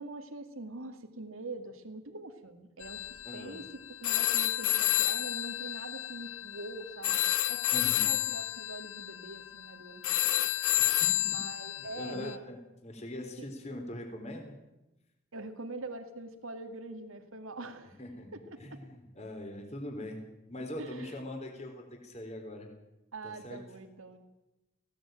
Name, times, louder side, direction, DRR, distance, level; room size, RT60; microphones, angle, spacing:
voice 1, 0.0-3.6 4.0-7.2 7.5-10.3 11.2-12.4 13.4-13.5 15.3-18.0 18.3-18.4 20.8-21.2 23.1-24.2, right 2 dB, 80° right, 7 dB, 2.3 m, -44 dB
sound 1, 2.8-12.4, left 14 dB, 85° left, 0.8 m, -30 dB
voice 2, 3.2-3.6 7.7-8.1 10.8-11.1 11.7-14.5 18.0-18.3 18.6-20.2 20.5-22.7 23.2-23.6, left 1 dB, 30° left, 3 dB, 3.8 m, -42 dB
19.5 x 17.0 x 9.2 m, 0.97 s
head